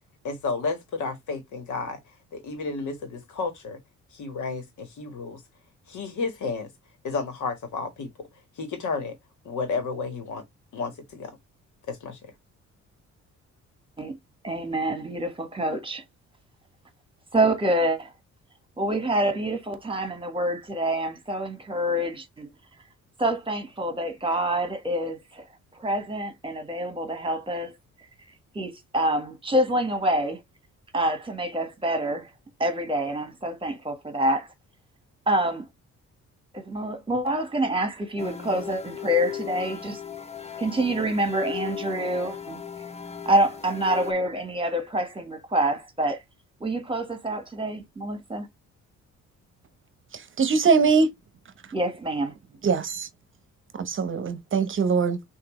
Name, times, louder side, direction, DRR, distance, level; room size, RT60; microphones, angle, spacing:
voice 1, 0.2-2.0 2.3-3.8 4.1-5.4 5.9-6.7 7.0-8.1 8.6-9.1 9.4-10.4 10.7-11.3 11.9-12.2, left 4 dB, 75° left, 1.5 m, -31 dB
voice 2, 14.4-16.0 17.3-18.1 18.8-22.5 23.2-25.4 25.8-27.7 28.5-30.4 30.9-32.3 32.6-34.5 35.3-35.6 36.5-40.0 40.6-42.6 43.2-46.2 46.6-48.5 51.7-52.3, right 1 dB, 15° right, 1.4 m, -26 dB
sound 1, 38.2-44.1, left 9 dB, 20° left, 0.6 m, -37 dB
voice 3, 50.1-51.1 52.6-53.1 53.8-55.2, right 5 dB, 40° right, 0.8 m, -22 dB
5.9 x 2.7 x 3.1 m
cardioid pair, 90°, 30 cm